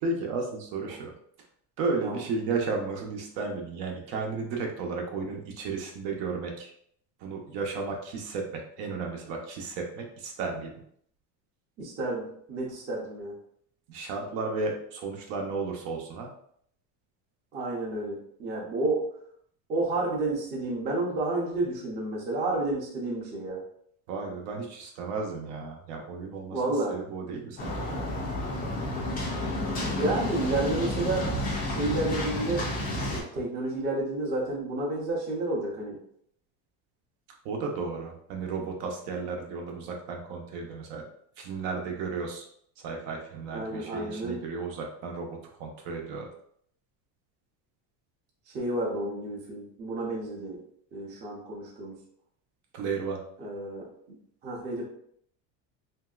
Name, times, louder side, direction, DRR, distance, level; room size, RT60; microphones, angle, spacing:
voice 1, 0.0-1.1 1.8-6.7 7.2-10.8 13.9-16.3 24.1-26.6 26.9-28.1 37.4-41.0 41.4-42.5 42.8-46.3 52.7-53.2, right 4 dB, 65° right, 2 dB, 0.7 m, -33 dB
voice 2, 11.8-13.3 17.5-19.0 19.7-23.6 26.5-27.0 29.8-31.3 31.6-36.0 43.5-44.4 48.5-50.6 50.9-51.9 53.4-54.2 54.4-54.9, right 2 dB, 25° right, -3 dB, 0.6 m, -31 dB
sound 1, 27.6-33.2, left 1 dB, 20° left, 0.4 m, -31 dB
3.0 x 2.7 x 2.3 m, 0.66 s
cardioid pair, 165°, 42 cm